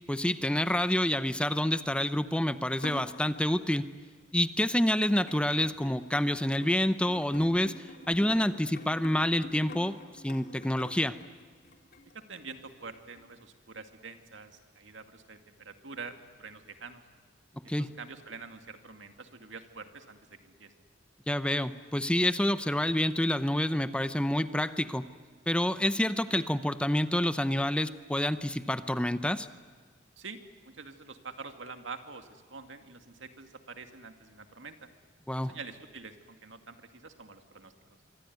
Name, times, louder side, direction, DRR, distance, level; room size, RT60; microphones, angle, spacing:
voice 1, 0.1-3.9 4.3-10.0 10.2-11.2 17.7-17.9 21.3-25.1 25.5-29.5 35.3-35.5, left 1 dB, 5° left, 12 dB, 0.7 m, -28 dB
sound 1, 2.8-3.7 4.5-4.6 5.3-12.8 13.2-13.3, left 2 dB, 55° left, 3.8 m, -47 dB
voice 2, 12.1-17.0 17.6-20.7 30.2-30.4 30.6-34.9 35.4-37.7, right 4 dB, 85° right, 6 dB, 2.2 m, -46 dB
26.0 x 24.0 x 9.5 m, 1.5 s
head